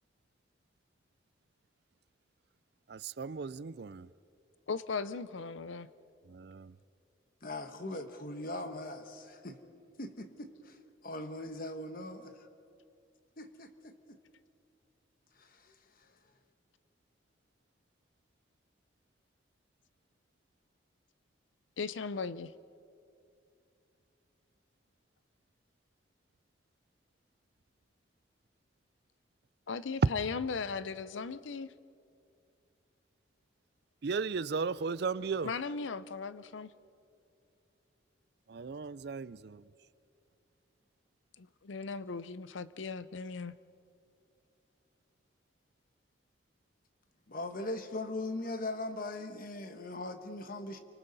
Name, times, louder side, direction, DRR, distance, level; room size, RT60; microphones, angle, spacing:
voice 1, 2.9-4.0 34.0-35.5 38.5-39.4, right 5 dB, 55° right, 0.4 m, -35 dB
voice 2, 4.7-5.9 21.8-22.5 29.7-31.7 35.4-36.7 41.4-43.5, left 5 dB, 80° left, 0.6 m, -37 dB
voice 3, 7.4-9.6 10.0-10.8 11.0-12.5 13.4-14.2 15.4-16.1 47.3-50.8, left 2 dB, 45° left, 1.3 m, -40 dB
29.5 x 24.5 x 4.1 m
head